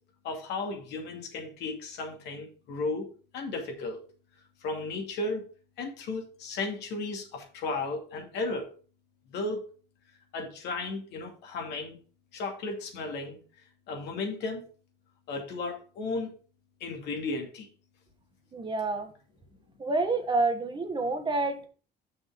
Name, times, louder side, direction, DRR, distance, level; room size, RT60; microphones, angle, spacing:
voice 1, 0.2-3.1 3.3-4.0 4.6-5.4 5.8-8.7 9.3-9.6 10.3-12.0 12.3-13.4 13.9-14.7 15.3-16.3 16.8-17.7, left 3 dB, 80° left, 2 dB, 2.5 m, -34 dB
voice 2, 18.5-19.1 19.8-21.7, right 3 dB, 30° right, 5 dB, 1.5 m, -28 dB
6.2 x 6.2 x 4.9 m, 0.39 s
cardioid pair, 110°, 17 cm